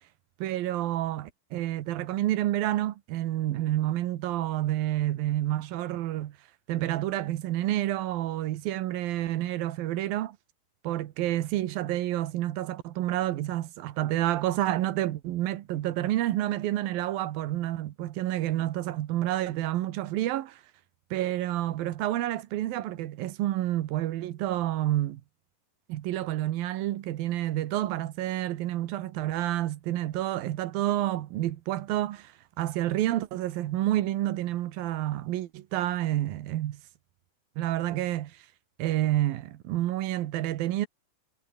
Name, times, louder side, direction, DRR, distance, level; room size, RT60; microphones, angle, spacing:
voice 1, 0.4-6.4 6.7-10.4 10.8-20.6 21.1-25.2 25.9-32.3 32.6-36.8 37.6-38.4 38.8-40.9, right 14 dB, 85° right, 3.0 m, -29 dB
omnidirectional pair, 4.1 m